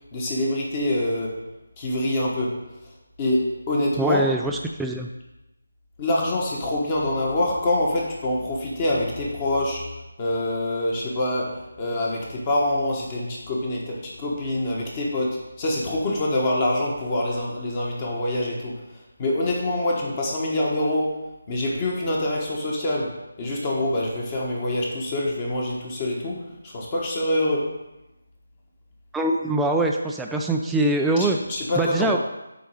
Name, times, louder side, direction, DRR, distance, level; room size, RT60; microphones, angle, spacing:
voice 1, 0.1-1.4 1.8-2.6 3.2-4.2 6.0-9.9 10.2-18.8 19.2-21.2 21.5-27.7 31.2-32.2, left 1 dB, 25° left, -2 dB, 1.4 m, -25 dB
voice 2, 4.0-5.1 29.1-31.4 31.8-32.2, right 2 dB, 5° right, 0 dB, 0.3 m, -23 dB
7.9 x 4.0 x 4.7 m, 0.96 s
figure-of-eight pair, 155°, 0 cm